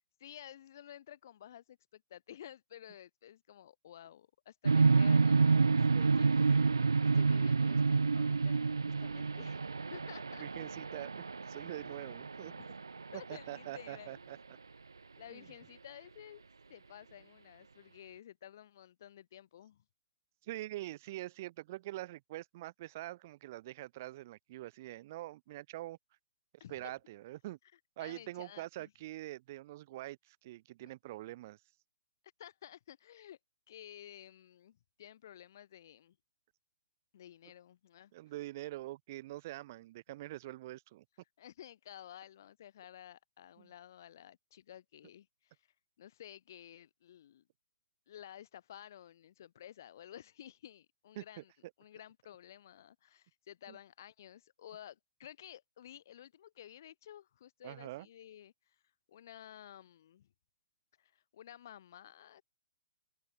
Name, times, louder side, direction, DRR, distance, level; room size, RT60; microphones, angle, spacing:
voice 1, 0.2-9.6 9.9-10.5 12.5-12.7 13.1-14.2 15.2-16.4 16.7-19.8 26.6-26.9 28.0-28.9 30.8-30.9 32.4-33.4 33.7-36.2 37.1-38.1 41.4-45.6 46.0-47.4 48.1-51.5 51.8-58.7 59.1-60.3 61.0-62.4, left 11 dB, 55° left, 3.0 m, -53 dB
sound 1, 4.6-13.5, right 4 dB, 85° right, 0.4 m, -29 dB
voice 2, 10.4-12.5 13.1-14.4 15.3-15.5 20.4-26.0 26.7-27.6 28.0-31.6 38.1-41.0 43.6-43.7 51.2-51.4 53.7-53.8 57.6-58.1, right 16 dB, 45° right, 2.9 m, -44 dB
figure-of-eight pair, 125°, 2 cm